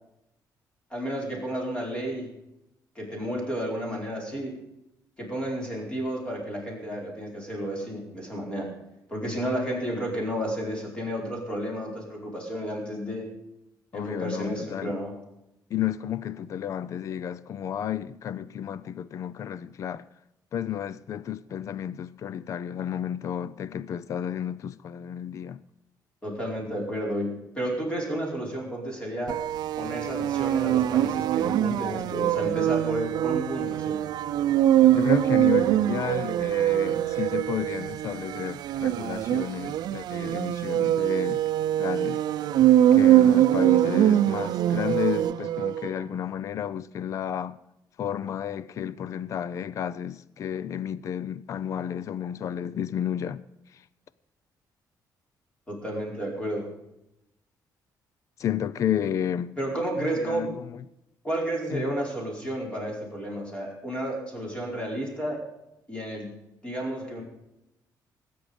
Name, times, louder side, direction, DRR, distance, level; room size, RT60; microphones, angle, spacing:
voice 1, 0.9-2.3 2.9-4.6 5.2-8.7 9.1-13.3 13.9-15.1 26.2-29.4 29.8-34.0 55.7-56.7 59.6-60.5 61.2-65.4 65.9-66.3 66.6-67.2, right 1 dB, 15° left, 4.6 m, -31 dB
voice 2, 13.9-15.0 15.7-20.0 20.5-25.6 34.9-41.5 41.8-42.2 42.9-47.6 48.0-53.4 53.7-53.8 58.4-59.5 60.0-60.8 61.7-61.9, left 9 dB, 45° left, 0.5 m, -32 dB
sound 1, 29.3-45.9, right 12 dB, 70° right, 0.6 m, -23 dB
19.5 x 9.5 x 5.1 m
cardioid pair, 165°, 7 cm